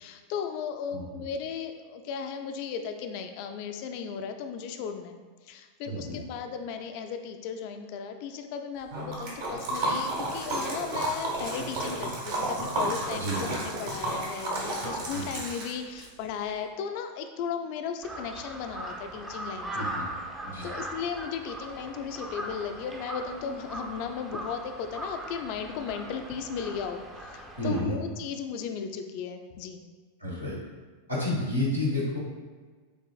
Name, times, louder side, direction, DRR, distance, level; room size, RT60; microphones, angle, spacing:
voice 1, 0.0-19.9 20.6-29.8, left 6 dB, 45° left, 6 dB, 0.3 m, -36 dB
voice 2, 5.9-6.2 13.1-13.4 15.1-15.3 19.7-20.0 20.4-20.7 27.6-28.0 30.2-30.6 31.1-32.2, left 1 dB, 85° right, -5 dB, 1.1 m, -30 dB
Liquid, 8.9-16.1, right 1 dB, 50° right, 0.9 m, -32 dB
Crow, 18.0-27.8, right 1 dB, 15° right, 0.5 m, -39 dB
6.8 x 2.4 x 2.3 m, 1.5 s
figure-of-eight pair, 90°, 0 cm